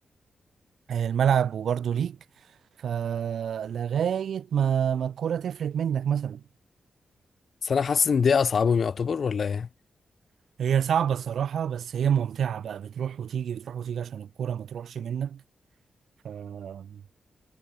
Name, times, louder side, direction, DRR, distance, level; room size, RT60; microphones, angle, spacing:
voice 1, 0.9-2.2 2.8-6.4 10.6-15.4 16.2-17.0, right 8 dB, 70° right, 1.9 m, -28 dB
voice 2, 7.6-9.7, left 6 dB, 45° left, 2.9 m, -23 dB
wide cardioid pair, 175°, 0 cm